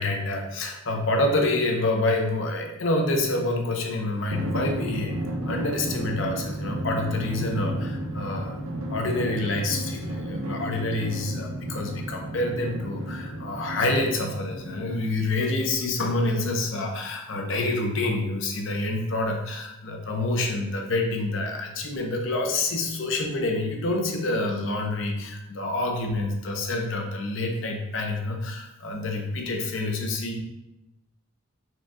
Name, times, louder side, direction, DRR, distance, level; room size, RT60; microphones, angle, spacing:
voice 1, 0.0-5.1 5.5-8.6 8.9-30.4, left 2 dB, 65° left, 2 dB, 0.6 m, -27 dB
Drum, 4.3-15.3, right 1 dB, 85° right, 0.6 m, -33 dB
4.3 x 2.3 x 3.6 m, 0.91 s
head